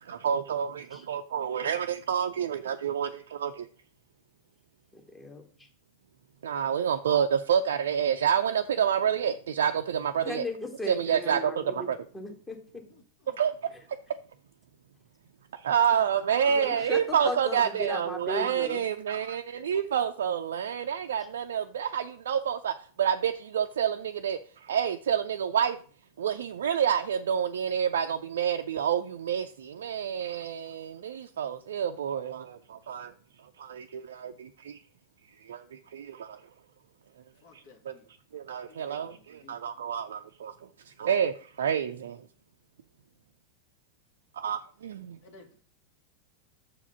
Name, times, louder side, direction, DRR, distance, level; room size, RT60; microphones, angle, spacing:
voice 1, 0.0-3.7 6.4-10.5 10.9-12.0 13.3-13.7 15.5-25.8 26.2-33.1 33.6-34.8 35.4-36.4 37.5-37.9 38.3-40.6 40.8-42.3 44.3-45.2, right 8 dB, 60° right, 0.5 m, -28 dB
voice 2, 4.9-5.4 10.2-11.9 12.1-12.9 16.5-18.8, left 1 dB, 15° left, 1.7 m, -36 dB
voice 3, 12.9-13.4 37.3-38.1 38.7-39.6 45.2-45.6, left 3 dB, 50° left, 1.8 m, -57 dB
7.0 x 4.8 x 6.8 m
figure-of-eight pair, 90°, 0 cm